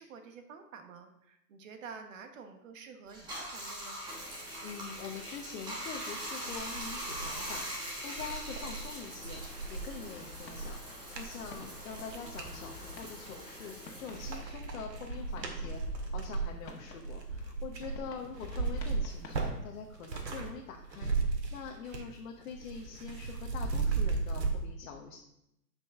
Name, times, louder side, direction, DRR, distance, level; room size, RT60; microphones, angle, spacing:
voice 1, 0.0-4.0 11.6-11.8 18.2-18.3 21.9-22.1, right 5 dB, 50° right, 6 dB, 1.2 m, -49 dB
Bathtub (filling or washing), 3.1-15.9 16.2-18.1, right 1 dB, 10° right, 1.3 m, -43 dB
voice 2, 4.3-25.2, left 6 dB, 55° left, 2 dB, 1.1 m, -45 dB
sound 1, 5.9-6.0 6.4-12.6 13.1-13.7 14.0-20.5 20.8-22.2 22.4-24.5, right 4 dB, 85° right, 1.9 m, -36 dB
sound 2, 10.1-19.5, left 4 dB, 85° left, 1.6 m, -51 dB
10.5 x 5.4 x 3.6 m, 0.82 s
hypercardioid pair, 145°, 49 cm